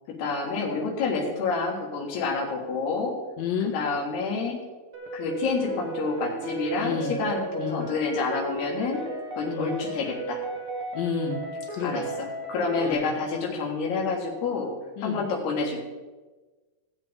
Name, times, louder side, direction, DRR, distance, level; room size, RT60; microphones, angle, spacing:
voice 1, 0.1-3.2 3.7-4.6 5.1-9.0 9.4-10.4 11.8-14.7 15.0-15.8, left 4 dB, 90° left, -1 dB, 3.7 m, -28 dB
voice 2, 3.4-3.8 6.8-7.1 7.6-7.8 9.5-9.7 10.9-11.4 11.7-12.0 12.8-13.0 15.0-15.2, left 7 dB, 70° left, -2 dB, 3.3 m, -30 dB
sound 1, 4.9-12.9, right 3 dB, 65° right, 1.3 m, -35 dB
16.5 x 8.0 x 3.7 m, 1.3 s
omnidirectional pair, 4.4 m